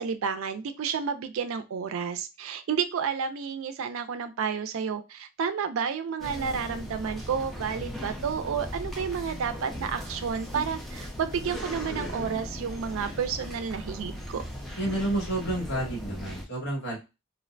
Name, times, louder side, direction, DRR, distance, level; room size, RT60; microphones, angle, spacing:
voice 1, 0.0-14.4, right 6 dB, 85° right, 10 dB, 0.4 m, -31 dB
sound 1, 6.2-16.4, equal, ahead, 0.5 m, -38 dB
voice 2, 14.8-17.0, right 1 dB, 60° left, -3 dB, 1.4 m, -30 dB
2.5 x 2.1 x 2.5 m, 0.26 s
head